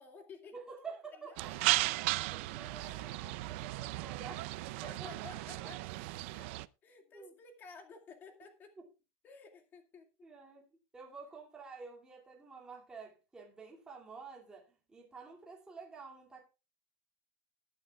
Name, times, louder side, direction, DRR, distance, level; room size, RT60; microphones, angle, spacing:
voice 1, 0.0-0.6 1.2-1.8 4.8-5.8 6.3-6.5 6.8-8.7 9.2-10.1, left 4 dB, 30° left, 2.3 m, -53 dB
voice 2, 0.5-1.6 2.3-5.1 7.1-7.3 8.8-8.9 10.2-10.7 10.9-16.4, right 5 dB, 10° right, 2.6 m, -50 dB
sound 1, 1.4-6.7, right 19 dB, 70° right, 0.6 m, -36 dB
20.0 x 9.0 x 2.4 m
cardioid pair, 165°, 7 cm